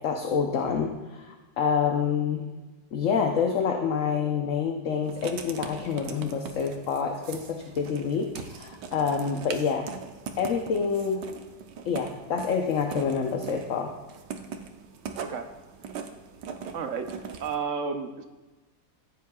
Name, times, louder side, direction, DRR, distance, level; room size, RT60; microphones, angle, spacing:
voice 1, 0.0-2.5 2.9-9.9 10.4-11.2 11.8-13.9, left 6 dB, 55° left, 3 dB, 1.0 m, -27 dB
Writing, 5.0-17.6, right 6 dB, 80° right, 1.4 m, -41 dB
voice 2, 16.7-18.2, right 5 dB, 55° right, 6 dB, 1.0 m, -32 dB
14.5 x 9.5 x 2.3 m, 1.2 s
omnidirectional pair, 1.9 m